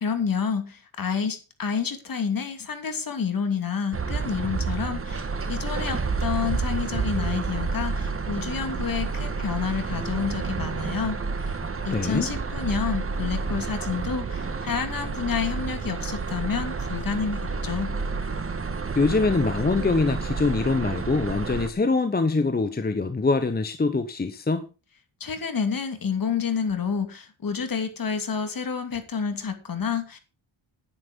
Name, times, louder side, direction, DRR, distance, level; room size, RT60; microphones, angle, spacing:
voice 1, 0.0-11.5 11.8-17.9 25.2-30.2, left 6 dB, 45° left, 2.7 m, -29 dB
sound 1, 3.9-21.7, right 4 dB, 30° right, 1.5 m, -30 dB
voice 2, 11.9-12.3 19.0-24.6, left 3 dB, 20° left, 1.0 m, -24 dB
10.5 x 9.9 x 5.2 m
wide cardioid pair, 120°, 47 cm